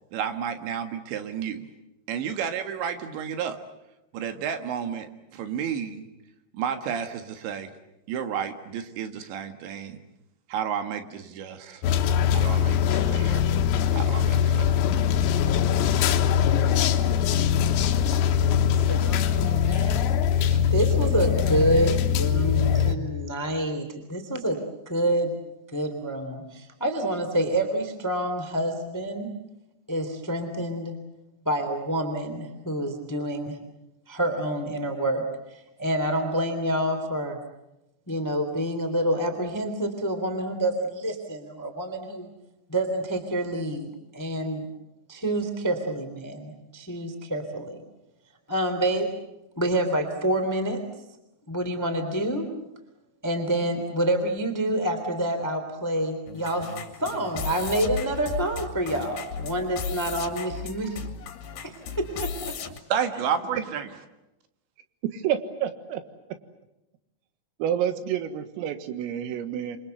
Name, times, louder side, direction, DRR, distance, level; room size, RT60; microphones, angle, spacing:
voice 1, 0.1-1.7 2.1-3.6 4.1-6.1 6.5-7.7 8.1-10.0 10.5-11.8 12.3-13.5 13.9-15.1 62.9-63.9, right 8 dB, 65° right, 8 dB, 3.7 m, -31 dB
sound 1, 11.8-23.0, left 8 dB, 90° left, 4.0 m, -22 dB
voice 2, 18.4-24.6 24.8-25.3 25.7-29.3 29.9-30.9 31.4-33.6 34.0-37.4 38.0-42.3 42.7-44.7 45.1-47.8 48.5-49.1 49.5-50.8 51.5-52.5 53.2-61.1 61.6-62.6, right 1 dB, 5° left, 7 dB, 1.7 m, -28 dB
sound 2, 56.3-62.8, left 6 dB, 60° left, 3.7 m, -35 dB
voice 3, 65.0-66.0 67.6-69.8, right 9 dB, 90° right, 10 dB, 4.3 m, -29 dB
28.5 x 24.5 x 8.0 m, 0.90 s
omnidirectional pair, 5.9 m